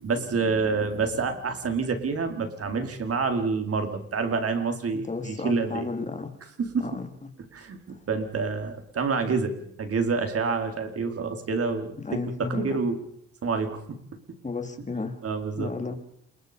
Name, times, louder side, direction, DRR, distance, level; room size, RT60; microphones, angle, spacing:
voice 1, 0.0-5.9 6.6-6.9 7.5-9.5 9.8-12.9 13.4-13.8 15.2-15.7, right 4 dB, 50° right, 6 dB, 4.6 m, -27 dB
voice 2, 4.9-6.3 6.8-7.1 7.9-8.0 12.0-12.8 14.4-15.2 15.6-16.0, left 3 dB, 25° left, 6 dB, 3.8 m, -33 dB
28.0 x 23.0 x 5.4 m, 0.69 s
cardioid pair, 90°, 30 cm